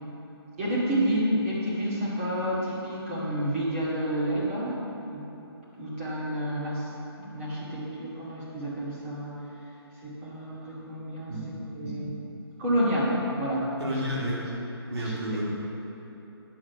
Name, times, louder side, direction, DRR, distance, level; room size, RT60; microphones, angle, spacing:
voice 1, 0.6-5.3 5.8-11.3 11.7-12.1 12.6-13.7 15.0-15.4, equal, 30° right, -8 dB, 2.2 m, -30 dB
voice 2, 13.8-14.5 14.9-15.4, equal, 70° right, -6 dB, 2.6 m, -31 dB
10.5 x 6.4 x 5.8 m, 3.0 s
hypercardioid pair, 165°, 14 cm